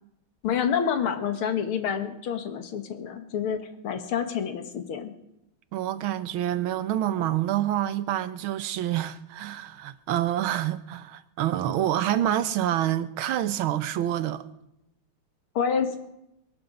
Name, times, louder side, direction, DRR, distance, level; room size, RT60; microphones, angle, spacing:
voice 1, 0.4-5.1 15.6-16.0, left 7 dB, 85° left, 2.3 m, -28 dB
voice 2, 5.7-14.4, right 12 dB, 75° right, 1.6 m, -27 dB
22.5 x 11.5 x 5.2 m
omnidirectional pair, 2.3 m